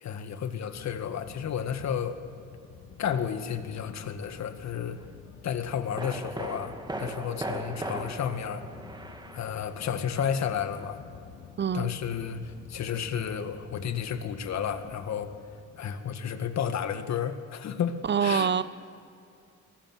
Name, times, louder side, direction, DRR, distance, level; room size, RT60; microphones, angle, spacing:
voice 1, 0.0-2.2 3.0-5.0 5.4-8.6 9.3-11.0 11.7-15.3 15.8-18.5, left 8 dB, 65° left, 8 dB, 1.9 m, -32 dB
sound 1, 0.7-15.9, left 7 dB, 85° left, 2.2 m, -50 dB
sound 2, 5.0-5.2 6.0-10.1 10.3-10.4, right 2 dB, 15° right, 1.9 m, -38 dB
voice 2, 11.6-11.9 18.0-18.6, right 7 dB, 35° right, 16 dB, 0.7 m, -25 dB
23.0 x 19.0 x 7.6 m, 2.4 s
cardioid pair, 90°, 30 cm